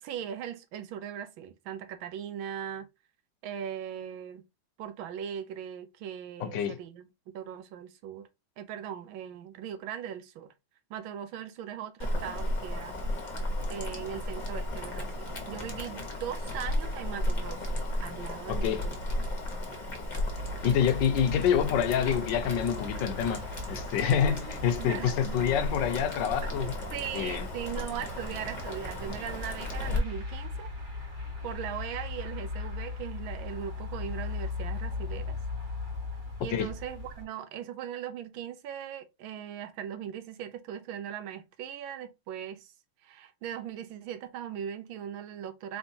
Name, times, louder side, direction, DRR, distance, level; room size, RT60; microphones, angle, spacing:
voice 1, 0.0-2.9 3.4-4.4 4.8-8.3 8.6-10.5 10.9-13.0 13.3-13.4 13.7-19.0 24.0-25.5 26.6-30.7 31.4-35.4 36.4-42.7 43.0-45.8, right 9 dB, 85° right, 1.5 m, -39 dB
voice 2, 6.4-6.8 18.5-18.9 20.6-26.7 27.1-27.5 36.5-36.7, left 8 dB, 70° left, 1.4 m, -27 dB
Boiling, 12.0-30.0, left 1 dB, 30° left, 0.9 m, -35 dB
sound 1, 20.2-37.2, left 2 dB, 25° right, 1.6 m, -39 dB
4.4 x 3.6 x 2.7 m
omnidirectional pair, 2.2 m